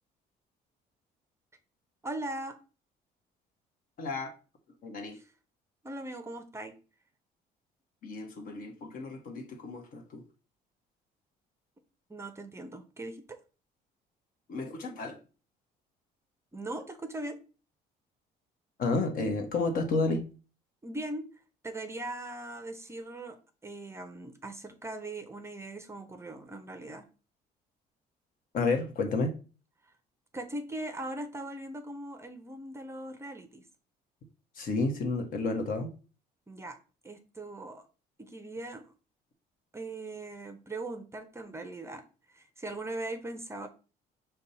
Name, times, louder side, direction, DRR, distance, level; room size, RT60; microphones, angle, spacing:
voice 1, 2.0-2.6 5.1-5.3 5.8-6.7 12.1-13.4 16.5-17.4 20.8-21.2 21.6-23.4 23.6-27.1 29.8-29.9 30.3-33.7 36.5-36.8 37.0-37.8 38.2-38.9 39.7-42.0 42.3-43.7, right 2 dB, 15° right, 0.5 m, -40 dB
voice 2, 4.0-4.3 4.8-5.2 8.0-10.2 14.5-15.2 18.8-20.2 28.5-29.3 34.5-35.9, left 3 dB, 55° left, 1.0 m, -31 dB
5.2 x 2.3 x 4.0 m
cardioid pair, 110°, 17 cm